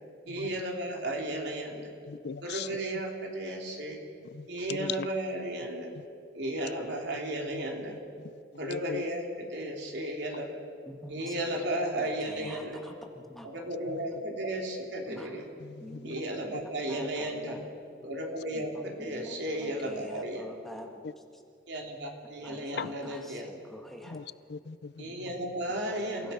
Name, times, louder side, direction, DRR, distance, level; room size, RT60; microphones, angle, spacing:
voice 1, 0.3-1.9 2.4-4.0 4.5-5.9 6.3-7.9 8.6-10.5 11.1-12.8 13.4-15.5 16.0-17.6 18.0-20.4 21.7-23.5 25.0-26.3, right 1 dB, 65° right, 0 dB, 3.4 m, -34 dB
voice 2, 2.1-2.7 4.3-5.1 6.0-6.1 7.5-7.6 8.6-9.0 11.2-11.3 13.9-14.0 15.6-16.2 21.0-21.1 22.8-22.9 24.1-25.1, left 6 dB, 60° left, 17 dB, 0.5 m, -39 dB
voice 3, 10.9-11.3 12.0-13.5 15.1-15.4 15.8-16.1 16.9-17.6 18.5-21.0 22.4-24.2 25.0-25.4 25.8-26.3, equal, ahead, 2 dB, 1.5 m, -47 dB
29.5 x 16.0 x 5.8 m, 2.4 s
head